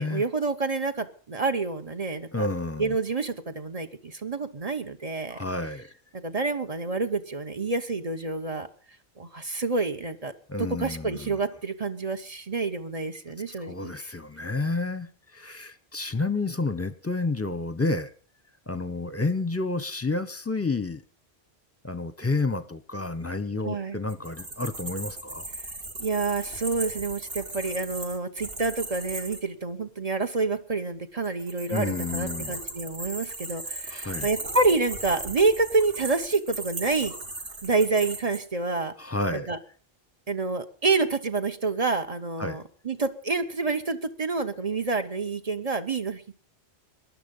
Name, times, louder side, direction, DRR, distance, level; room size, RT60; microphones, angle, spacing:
voice 1, 0.0-2.5 2.8-5.4 6.1-8.7 9.2-10.3 10.6-13.9 23.6-24.0 26.0-37.1 37.6-38.9 39.3-39.6 40.3-46.3, right 3 dB, 35° right, 7 dB, 1.1 m, -28 dB
voice 2, 2.3-3.0 5.3-5.9 10.5-11.4 13.6-15.1 15.3-18.1 18.7-21.0 21.8-25.5 31.7-32.6 33.9-34.3 39.0-39.5 42.4-42.6, left 3 dB, 15° left, 12 dB, 0.9 m, -30 dB
sound 1, 24.1-29.4 31.2-38.4, right 2 dB, 60° right, 2.4 m, -37 dB
19.0 x 11.5 x 5.4 m, 0.42 s
omnidirectional pair, 1.1 m